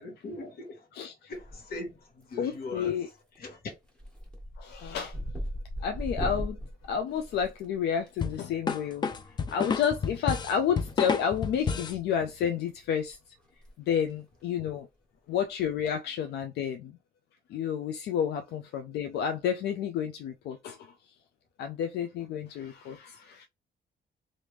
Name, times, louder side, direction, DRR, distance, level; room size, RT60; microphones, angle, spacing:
voice 1, 0.0-0.9 1.3-2.9 3.4-3.6, left 2 dB, 65° left, 1.2 m, -40 dB
voice 2, 0.9-1.3 2.4-3.1 4.6-5.2 5.8-6.6 6.9-9.1 9.5-13.2 13.9-14.9 15.3-16.9 17.5-20.8 21.6-23.5, left 8 dB, 85° left, 0.4 m, -30 dB
sound 1, 1.3-1.9 2.2-2.7 3.1-3.4 3.7-8.1 9.5-9.6 10.8-11.6 11.9-12.1 12.7-12.8 13.0-13.1 13.5-13.7 14.0-14.1 15.6-15.9, equal, 5° left, 1.2 m, -38 dB
sound 2, 8.2-12.0, left 5 dB, 25° left, 0.4 m, -30 dB
3.3 x 2.6 x 3.0 m
cardioid pair, 140°, 17 cm